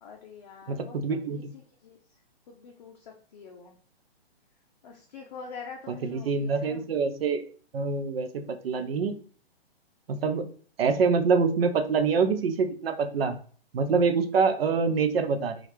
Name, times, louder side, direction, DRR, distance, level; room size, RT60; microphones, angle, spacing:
voice 1, 0.0-1.0 1.3-1.4 1.8-2.0 2.5-3.8 4.8-6.8, left 5 dB, 45° left, 2 dB, 0.5 m, -45 dB
voice 2, 0.7-1.5 5.9-7.4 7.7-9.2 10.1-10.5 10.8-13.4 13.7-15.6, right 5 dB, 70° right, 8 dB, 0.5 m, -25 dB
2.7 x 2.4 x 3.2 m, 0.43 s
hypercardioid pair, 140°, 31 cm